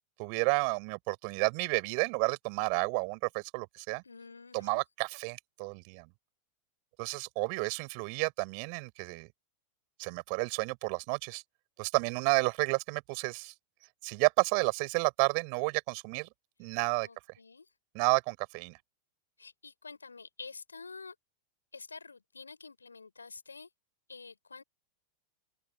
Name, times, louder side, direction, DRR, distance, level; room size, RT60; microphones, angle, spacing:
voice 1, 0.2-4.0 4.5-6.1 7.0-9.3 10.0-11.4 11.8-13.5 14.0-16.3 16.6-17.1 17.9-18.8, right 40 dB or more, 45° right, 7.6 m, -31 dB
voice 2, 4.0-4.8 17.0-17.7 19.4-21.1 21.7-23.7 24.1-24.6, left 4 dB, 75° left, 7.1 m, -48 dB
open air
figure-of-eight pair, 90°, 0 cm